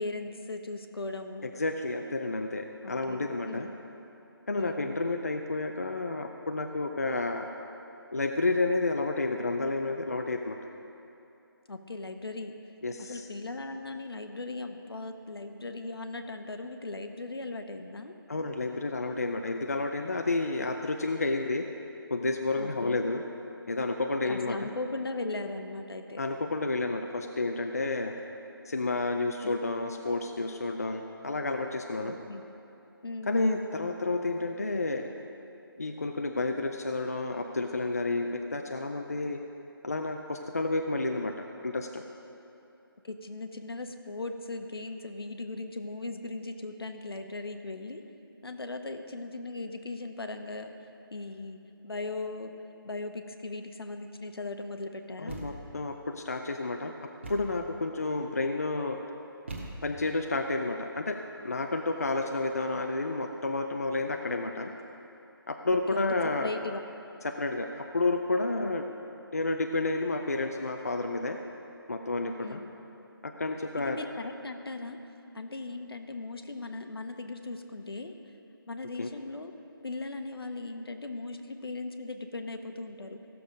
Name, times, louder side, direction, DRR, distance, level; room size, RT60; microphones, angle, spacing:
voice 1, 0.0-1.5 2.8-3.8 4.5-4.9 11.7-12.5 13.0-18.1 22.6-23.1 24.2-26.2 29.4-29.7 32.0-32.4 33.0-33.3 43.0-48.0 48.4-50.7 51.1-51.6 51.8-52.5 52.8-55.4 65.9-66.1 66.4-66.8 68.6-69.0 72.4-72.7 73.7-75.0 75.3-78.1 78.7-79.5 79.8-83.2, left 2 dB, 75° left, 6 dB, 1.0 m, -38 dB
voice 2, 1.6-3.7 4.5-7.5 8.1-10.6 12.8-13.2 18.3-21.6 22.1-23.2 23.7-24.7 26.2-28.1 28.7-32.1 33.3-35.1 35.8-39.4 39.8-41.3 41.6-42.0 55.2-56.9 57.3-59.0 59.8-61.2 61.4-64.7 65.5-66.5 67.2-68.8 69.3-71.4 71.9-72.6 73.2-74.0 79.0-79.1, left 2 dB, 40° left, 4 dB, 0.5 m, -30 dB
Thump thud, 55.3-55.8 57.2-57.7 59.5-60.1, right 2 dB, 30° right, 1.2 m, -41 dB
16.0 x 6.9 x 5.1 m, 2.9 s
figure-of-eight pair, 180°, 13 cm